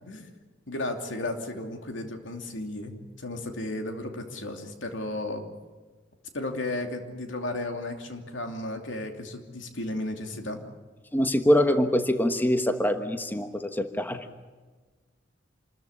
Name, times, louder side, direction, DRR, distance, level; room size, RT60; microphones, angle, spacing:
voice 1, 0.7-5.4 6.3-10.6, left 2 dB, 80° left, 4 dB, 2.9 m, -34 dB
voice 2, 11.1-14.2, equal, 10° left, 7 dB, 1.2 m, -24 dB
27.5 x 14.0 x 9.9 m, 1.3 s
head